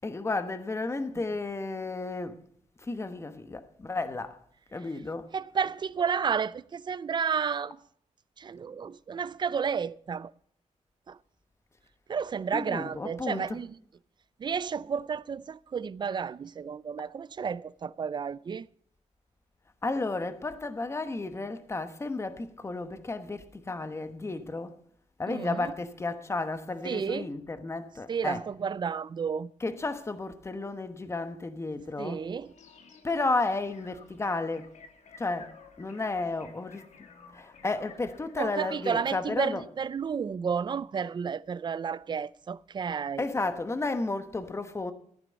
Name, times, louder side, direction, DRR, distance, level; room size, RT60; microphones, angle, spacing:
voice 1, 0.0-2.4 2.8-4.4 4.7-5.3 12.5-13.6 19.8-24.8 25.2-28.4 29.6-32.2 33.0-34.8 35.2-37.1 37.3-39.6 43.2-44.9, left 3 dB, 20° left, 1.0 m, -33 dB
voice 2, 5.3-7.8 8.4-10.3 11.1-11.2 12.1-13.8 14.4-18.7 25.3-25.7 26.8-27.3 28.1-29.5 32.0-32.5 38.4-43.3, right 6 dB, 35° right, 0.4 m, -31 dB
sound 1, 32.4-39.2, left 5 dB, 70° left, 2.1 m, -53 dB
14.5 x 9.2 x 5.2 m
wide cardioid pair, 125°, 12 cm